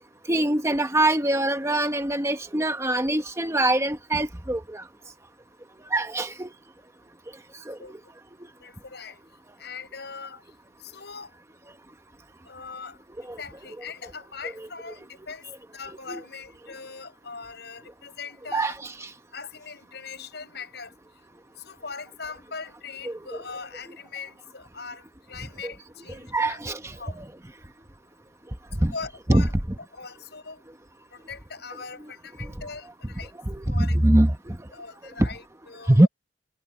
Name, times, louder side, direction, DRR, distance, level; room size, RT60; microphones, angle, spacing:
voice 1, 0.3-4.8 5.9-6.5 7.7-7.8 16.1-16.2 18.5-18.9 23.0-23.2 26.3-26.8 27.2-27.3 28.8-28.9 29.3-29.5 33.5-34.6 35.2-35.3 35.9-36.1, right 1 dB, 15° right, 1.0 m, -23 dB
voice 2, 7.8-8.1 8.6-9.2 9.6-10.4 10.8-11.3 12.5-18.7 19.3-20.9 21.6-26.6 26.9-27.2 28.8-29.5 29.9-30.6 31.1-33.3 33.7-34.2 34.7-36.1, left 5 dB, 65° left, 7.4 m, -41 dB
head